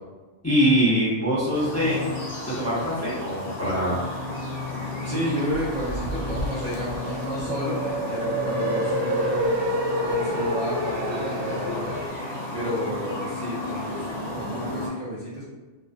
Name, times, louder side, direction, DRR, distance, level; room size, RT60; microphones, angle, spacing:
voice 1, 0.4-2.0 2.5-4.0, equal, 20° left, -9 dB, 0.4 m, -23 dB
sound 1, 1.5-14.9, left 2 dB, 70° left, 0.9 m, -33 dB
voice 2, 5.0-9.6 10.0-12.0 12.5-15.4, equal, 50° right, -9 dB, 0.5 m, -31 dB
sound 2, 5.5-12.1, equal, 80° right, 0.9 m, -28 dB
2.4 x 2.2 x 2.4 m, 1.2 s
omnidirectional pair, 1.2 m